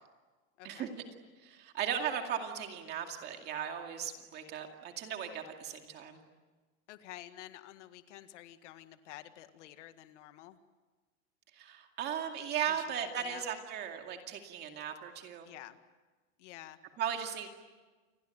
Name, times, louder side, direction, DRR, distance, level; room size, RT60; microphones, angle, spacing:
voice 1, 0.6-0.9 6.9-10.6 12.7-12.9 13.2-13.4 15.4-15.8 16.4-16.8, left 14 dB, 65° left, 10 dB, 1.8 m, -50 dB
voice 2, 1.4-6.2 11.5-15.5 17.0-17.5, right 9 dB, 25° right, 4 dB, 2.3 m, -37 dB
29.0 x 22.0 x 9.2 m, 1.3 s
supercardioid pair, 180°, 39 cm